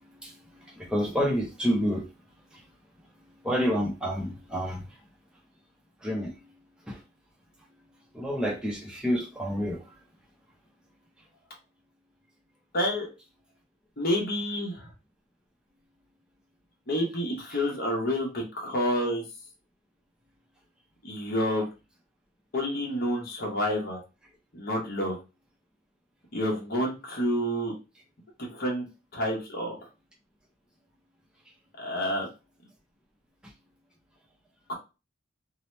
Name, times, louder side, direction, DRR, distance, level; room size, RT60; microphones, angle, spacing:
voice 1, 0.9-2.0 3.4-4.8 6.0-6.3 8.1-9.8, equal, 5° right, 0.6 m, -28 dB
voice 2, 12.7-13.1 14.0-14.9 16.9-19.2 21.0-21.7 22.5-24.0 24.5-25.2 26.3-27.7 28.4-28.8 29.1-29.8 31.8-32.3 34.7-34.8, equal, 50° left, 0.9 m, -28 dB
2.8 x 2.0 x 3.1 m
head